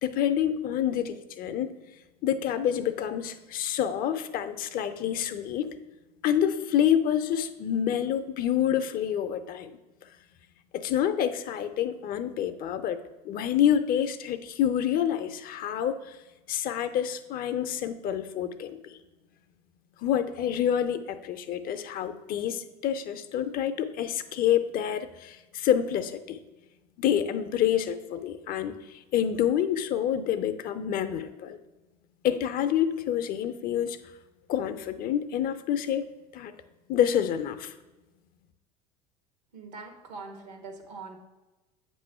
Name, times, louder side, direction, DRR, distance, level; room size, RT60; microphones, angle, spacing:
voice 1, 0.0-1.8 2.2-5.7 6.2-9.7 10.7-13.0 13.2-16.2 16.5-19.0 20.0-26.4 27.0-31.6 32.2-34.0 34.5-36.1 36.3-36.5 36.9-37.7, left 10 dB, 45° left, 11 dB, 0.6 m, -27 dB
voice 2, 39.5-41.2, right 4 dB, 75° right, 4 dB, 1.3 m, -42 dB
8.0 x 3.1 x 5.4 m, 1.1 s
hypercardioid pair, 80°, 21 cm